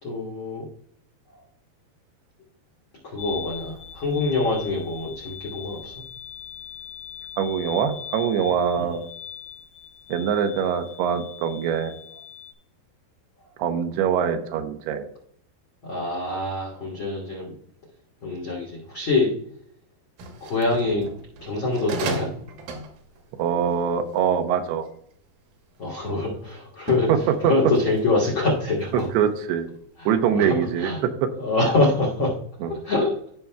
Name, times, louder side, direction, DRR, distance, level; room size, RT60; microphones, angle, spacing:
voice 1, 0.0-0.6 3.0-5.9 8.8-9.0 15.8-17.5 18.2-19.3 20.4-21.0 21.4-22.3 25.8-29.1 30.0-31.0 31.4-32.3 32.7-33.1, left 2 dB, 65° left, -2 dB, 1.2 m, -25 dB
sound 1, 3.2-12.5, left 9 dB, 85° left, 2.6 m, -40 dB
voice 2, 7.4-9.1 10.1-11.9 13.6-15.1 23.4-24.8 27.1-27.2 27.4-27.5 28.9-29.7 30.1-31.1 32.6-32.8, right 8 dB, 85° right, 7 dB, 2.7 m, -23 dB
sound 2, 20.2-25.2 25.8-26.2 26.7-29.5 29.8-30.0, right 3 dB, 70° right, 2.7 m, -36 dB
15.0 x 5.6 x 2.3 m, 0.66 s
omnidirectional pair, 4.7 m